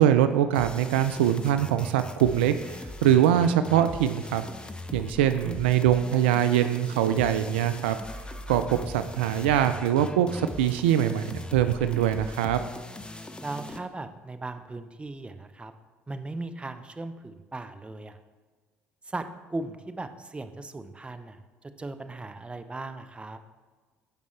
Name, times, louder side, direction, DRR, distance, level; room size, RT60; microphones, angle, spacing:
voice 1, 0.0-4.5 4.9-8.0 8.5-12.6, right 10 dB, 80° right, 10 dB, 0.4 m, -23 dB
sound 1, 0.5-13.8, left 1 dB, 15° left, 0.9 m, -40 dB
voice 2, 13.4-15.7 16.1-18.2 19.0-23.4, right 2 dB, 20° right, 9 dB, 0.8 m, -38 dB
16.0 x 5.3 x 3.2 m, 1.4 s
hypercardioid pair, 55°, 6 cm